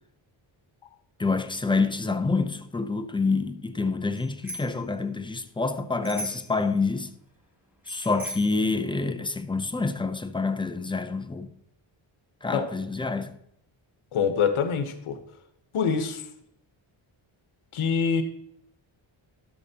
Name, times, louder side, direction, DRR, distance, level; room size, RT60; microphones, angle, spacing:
voice 1, 1.2-7.1 7.9-11.5 12.4-13.3, left 3 dB, 10° left, 0.4 m, -27 dB
Bicycle bell, 4.1-4.8 6.0-6.6 7.9-8.6, equal, 5° right, 1.7 m, -38 dB
voice 2, 14.1-15.2 15.7-16.2 17.7-18.2, left 6 dB, 80° left, 1.1 m, -25 dB
12.0 x 6.6 x 2.9 m
wide cardioid pair, 140°, 49 cm